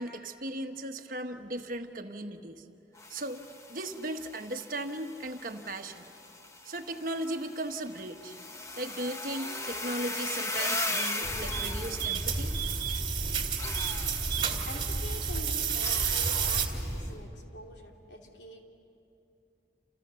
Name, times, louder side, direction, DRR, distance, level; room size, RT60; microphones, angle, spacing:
voice 1, 0.0-2.7 3.1-3.4 3.7-6.1 6.6-8.3 8.8-12.5, right 1 dB, 50° right, 5 dB, 1.3 m, -37 dB
sound 1, 2.9-13.0 13.6-15.0 15.8-17.0, left 2 dB, 15° left, 1.0 m, -38 dB
sound 2, 10.7-16.7, right 9 dB, 30° right, 2.4 m, -32 dB
sound 3, 11.2-17.2, equal, 5° right, 4.2 m, -35 dB
voice 2, 14.7-18.6, left 1 dB, 80° left, 1 dB, 3.1 m, -45 dB
29.5 x 29.0 x 7.0 m, 2.7 s
head